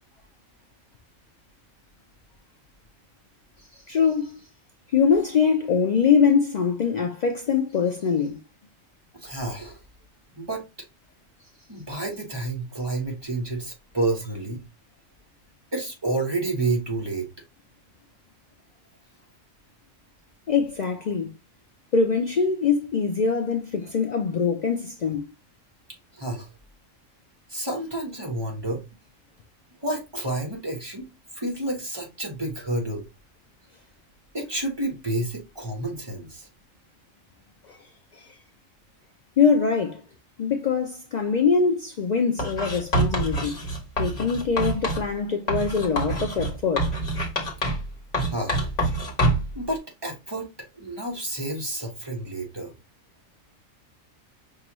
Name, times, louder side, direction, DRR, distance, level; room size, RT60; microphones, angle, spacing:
voice 1, 3.7-4.4 4.9-8.4 20.5-21.3 21.9-25.3 37.7-37.8 38.1-38.3 39.4-40.0 40.4-43.7 44.0-46.9, left 5 dB, 75° left, 0.4 m, -23 dB
voice 2, 9.2-9.8 10.4-10.6 11.7-14.6 15.7-17.3 26.1-26.5 27.5-28.8 29.8-31.1 31.3-33.1 34.3-36.5 48.3-48.7 49.5-50.5 50.8-52.7, right 2 dB, 20° right, 1.2 m, -30 dB
Writing, 42.4-45.1 45.5-47.9 48.1-49.5, right 1 dB, 35° left, 1.2 m, -26 dB
5.5 x 2.5 x 2.9 m
omnidirectional pair, 1.3 m